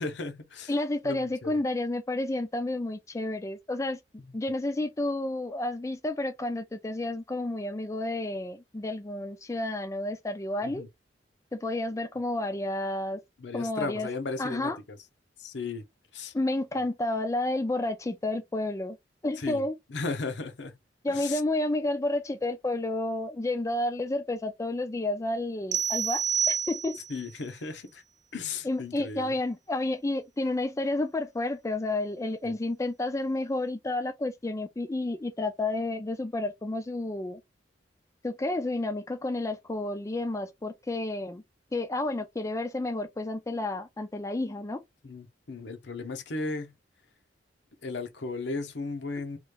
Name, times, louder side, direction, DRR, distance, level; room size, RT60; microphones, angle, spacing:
voice 1, 0.0-0.7 1.0-1.5 10.6-10.9 13.4-15.0 15.4-15.8 16.1-16.3 19.4-20.7 21.1-21.4 27.1-28.0 28.3-29.4 32.4-32.5 45.0-46.7 47.8-49.4, left 3 dB, 75° left, 0.7 m, -35 dB
voice 2, 0.7-4.0 4.3-10.8 11.5-13.2 13.5-14.1 14.4-14.8 16.3-19.0 19.2-19.7 21.0-27.0 28.6-37.4 38.2-41.4 41.7-44.8, left 2 dB, 15° left, 0.4 m, -30 dB
sound 1, 25.7-27.2, right 8 dB, 45° right, 0.5 m, -28 dB
3.0 x 2.4 x 3.2 m
head